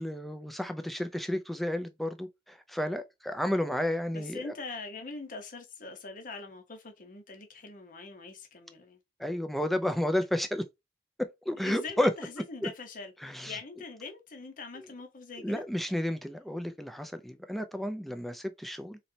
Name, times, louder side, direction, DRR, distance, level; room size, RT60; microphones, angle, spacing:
voice 1, 0.0-4.5 9.2-10.6 11.2-12.1 12.6-12.7 13.2-13.6 15.4-19.0, left 1 dB, ahead, 0.4 m, -32 dB
voice 2, 4.1-9.0 11.6-15.6 18.1-18.2, left 4 dB, 50° left, 0.9 m, -43 dB
4.0 x 3.1 x 2.7 m
head